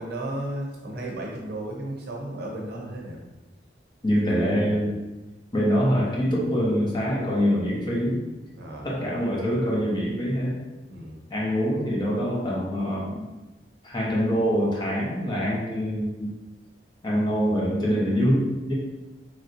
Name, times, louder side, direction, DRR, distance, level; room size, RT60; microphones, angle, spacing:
voice 1, 0.0-3.2 8.6-8.9 10.9-11.2, right 1 dB, 60° right, -1 dB, 0.6 m, -34 dB
voice 2, 4.0-5.0 5.5-8.2 8.8-10.6 11.3-13.3 13.8-16.4 17.0-18.7, equal, 25° left, -4 dB, 0.7 m, -24 dB
3.1 x 2.7 x 2.5 m, 1.1 s
head